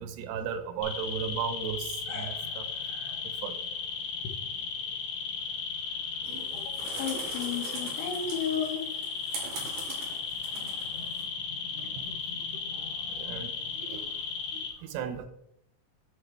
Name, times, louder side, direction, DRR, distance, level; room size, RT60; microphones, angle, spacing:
voice 1, 0.0-2.7 3.4-3.5 10.6-10.7 11.7-12.1 12.7-14.1 14.5-15.3, right 7 dB, 80° right, 7 dB, 2.3 m, -36 dB
sound 1, 0.8-14.7, left 5 dB, 60° left, 3.0 m, -35 dB
sound 2, 6.2-11.2, right 4 dB, 55° right, 2.7 m, -42 dB
voice 2, 6.6-8.8, left 7 dB, 75° left, 3 dB, 3.0 m, -33 dB
8.8 x 6.4 x 3.3 m, 0.76 s
omnidirectional pair, 5.2 m